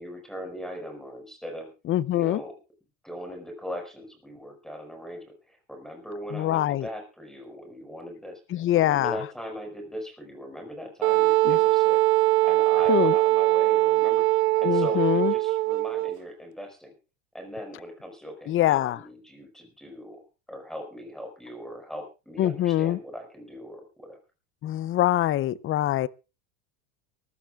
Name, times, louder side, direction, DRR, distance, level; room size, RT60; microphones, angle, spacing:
voice 1, 0.0-1.7 2.1-2.5 3.0-8.4 8.7-12.0 12.4-14.3 14.6-16.9 17.3-20.2 20.5-24.2, equal, ahead, 5.0 m, -39 dB
voice 2, 1.9-2.4 6.3-6.9 8.5-9.2 11.4-11.6 12.9-13.1 14.6-15.3 18.5-19.0 22.4-23.0 24.6-26.1, left 13 dB, 30° left, 0.6 m, -24 dB
Wind instrument woodwind instrument, 11.0-16.2, right 19 dB, 75° right, 1.4 m, -21 dB
23.5 x 14.5 x 2.4 m
supercardioid pair, 130°, 42 cm